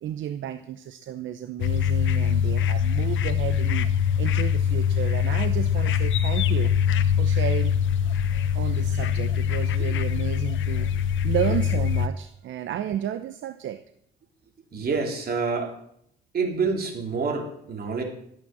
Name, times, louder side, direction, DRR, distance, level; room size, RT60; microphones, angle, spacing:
voice 1, 0.0-3.9 4.2-7.7 8.5-10.9 11.2-13.8, right 10 dB, 70° right, 11 dB, 0.8 m, -32 dB
sound 1, 1.6-12.1, left 8 dB, 75° left, 1.0 m, -23 dB
voice 2, 14.7-15.8 16.3-18.0, right 4 dB, 50° right, 2 dB, 3.8 m, -27 dB
13.5 x 9.1 x 7.8 m, 0.70 s
cardioid pair, 90°, 20 cm